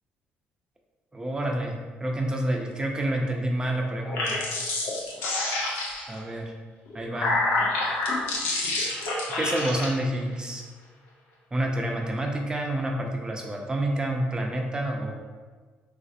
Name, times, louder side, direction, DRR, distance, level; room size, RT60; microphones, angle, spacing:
voice 1, 1.1-4.4 6.1-6.5 6.9-7.3 9.4-10.6 11.5-15.1, right 1 dB, 20° right, 1 dB, 0.5 m, -28 dB
sound 1, 4.0-6.2 6.9-9.9, left 2 dB, 85° left, 0.6 m, -28 dB
3.1 x 2.4 x 2.7 m, 1.5 s
supercardioid pair, 70°, 4 cm